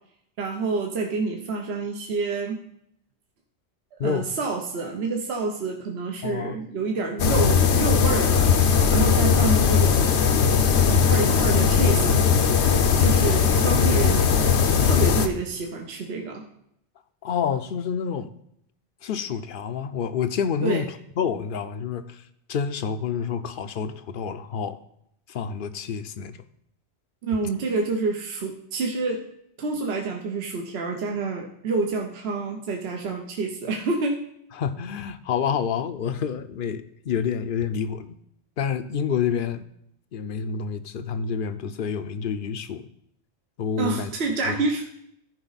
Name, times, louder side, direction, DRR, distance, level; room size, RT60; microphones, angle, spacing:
voice 1, 0.4-2.6 3.9-8.5 8.9-10.1 10.9-12.3 13.0-14.2 14.8-16.4 20.6-20.8 27.2-29.2 29.6-34.2 43.8-44.9, right 3 dB, 65° right, 2 dB, 1.1 m, -28 dB
voice 2, 6.2-6.5 17.2-18.3 19.0-20.9 21.2-22.2 22.5-24.8 25.3-26.4 34.6-38.2 38.6-39.6 40.1-42.9 43.6-44.1, left 7 dB, 55° left, 11 dB, 0.7 m, -28 dB
sound 1, 7.2-15.3, left 6 dB, 75° left, 1.0 m, -19 dB
14.0 x 5.2 x 4.0 m, 0.74 s
omnidirectional pair, 1.2 m